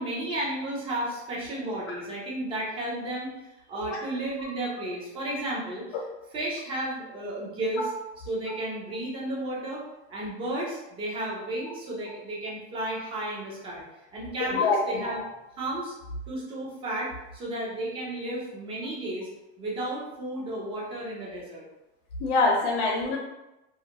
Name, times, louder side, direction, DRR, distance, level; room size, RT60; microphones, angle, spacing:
voice 1, 0.0-6.0 6.3-7.9 8.2-13.8 14.1-15.2 15.6-15.9 16.3-19.3 19.6-21.7, right 1 dB, 15° right, -5 dB, 0.5 m, -33 dB
voice 2, 14.4-15.0 22.2-23.2, left 3 dB, 65° left, -1 dB, 0.6 m, -25 dB
2.3 x 2.2 x 2.7 m, 0.98 s
supercardioid pair, 160°, 34 cm